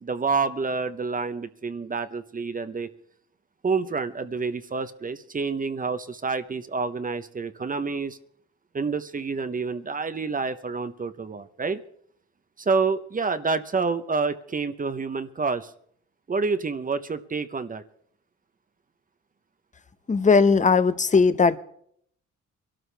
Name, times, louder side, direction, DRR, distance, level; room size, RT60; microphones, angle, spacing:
voice 1, 0.0-2.9 3.6-8.2 8.7-11.8 12.6-15.7 16.3-17.8, right 4 dB, 25° right, 11 dB, 0.9 m, -28 dB
voice 2, 20.1-21.6, left 4 dB, 25° left, 13 dB, 0.9 m, -18 dB
23.5 x 12.5 x 3.4 m, 0.65 s
cardioid pair, 90°, 30 cm